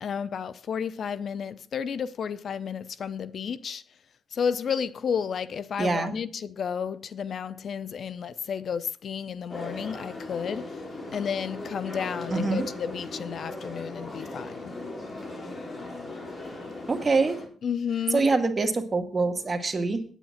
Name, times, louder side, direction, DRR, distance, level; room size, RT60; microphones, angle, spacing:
voice 1, 0.0-3.8 4.3-10.8 11.1-14.7 17.6-18.2, left 7 dB, 60° left, 0.6 m, -32 dB
voice 2, 5.8-6.1 12.3-12.7 16.9-17.4 18.1-20.0, right 3 dB, 30° right, 1.9 m, -25 dB
sound 1, 9.5-17.5, left 2 dB, 40° left, 3.9 m, -38 dB
9.2 x 9.1 x 5.7 m
cardioid pair, 90°, 0 cm